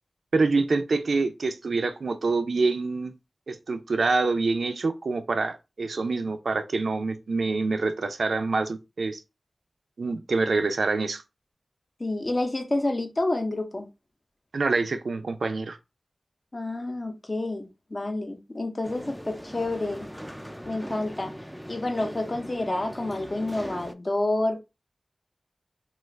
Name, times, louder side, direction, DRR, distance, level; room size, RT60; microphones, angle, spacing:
voice 1, 0.3-3.1 3.5-9.2 10.0-11.2 14.5-15.8, right 3 dB, 85° right, 0.4 m, -26 dB
voice 2, 12.0-13.9 16.5-20.1 20.6-21.3 21.7-24.6, left 2 dB, 40° left, 0.7 m, -29 dB
sound 1, 18.8-23.9, equal, ahead, 0.3 m, -40 dB
2.4 x 2.3 x 3.1 m
wide cardioid pair, 55°, 0 cm